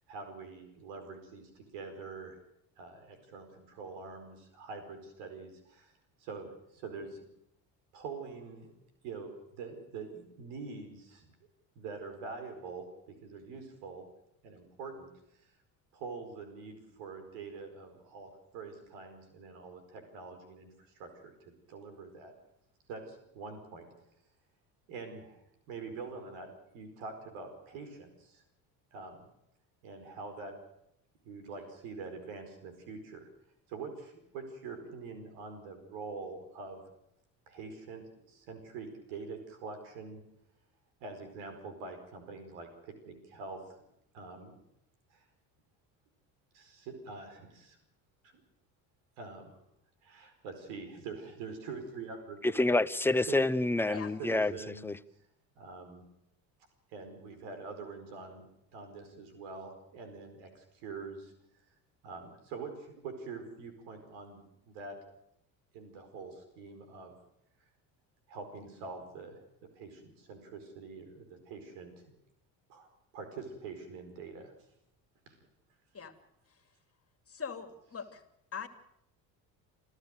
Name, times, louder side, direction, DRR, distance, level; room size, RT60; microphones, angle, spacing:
voice 1, 0.1-2.4 2.8-5.9 6.2-7.3 7.9-8.7 9.0-11.3 11.7-14.1 14.4-15.1 15.9-20.7 20.9-22.3 22.9-23.9 24.9-25.4 25.7-28.4 28.9-29.3 29.8-30.7 31.2-33.3 33.7-36.8 37.5-40.2 41.0-43.8 44.1-44.6 45.1-45.2 46.5-47.8 48.2-48.3 49.2-49.5 50.0-52.4 53.3-53.4 53.9-54.9 55.5-56.0 56.9-58.5 58.7-61.3 62.0-65.1 65.7-67.1 68.3-72.1 72.7-72.9 73.1-74.5 75.3-75.4, right 4 dB, 70° right, 5.0 m, -45 dB
voice 2, 52.4-54.5 54.8-55.0, left 2 dB, 5° left, 0.7 m, -27 dB
voice 3, 77.3-78.2 78.5-78.7, left 6 dB, 30° left, 2.8 m, -41 dB
28.0 x 15.0 x 6.7 m
hypercardioid pair, 65°, 49 cm